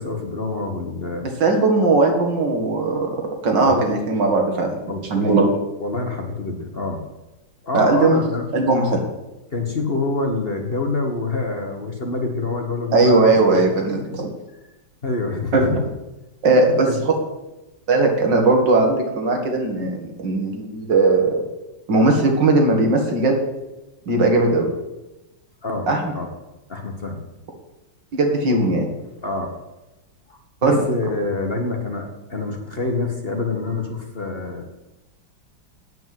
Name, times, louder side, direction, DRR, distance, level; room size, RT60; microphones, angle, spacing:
voice 1, 0.0-1.3 3.6-4.0 4.8-5.5 5.8-7.0 7.6-8.5 9.5-13.0 13.5-13.7 15.0-15.8 16.7-17.0 25.6-25.9 26.1-26.3 26.7-27.2 29.2-29.5 30.3-34.7, left 3 dB, 35° left, 3 dB, 1.4 m, -26 dB
voice 2, 1.2-3.2 3.4-4.7 5.1-5.5 7.7-8.2 8.5-9.0 12.9-14.3 15.5-15.8 16.4-16.9 17.9-21.4 21.9-23.4 24.1-24.7 25.9-26.0 28.1-28.9 30.6-30.8, right 3 dB, 70° right, 2 dB, 2.7 m, -18 dB
9.2 x 8.8 x 7.7 m, 1.0 s
omnidirectional pair, 2.0 m